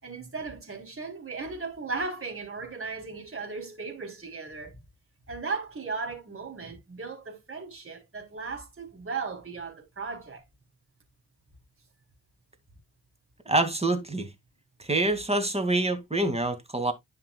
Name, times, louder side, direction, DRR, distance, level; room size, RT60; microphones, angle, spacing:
voice 1, 0.0-4.8 5.3-10.4, right 4 dB, 35° right, 3.9 m, -36 dB
voice 2, 13.5-14.3 14.8-16.9, right 2 dB, 15° right, 2.4 m, -26 dB
10.5 x 5.8 x 2.4 m
cardioid pair, 60°, 37 cm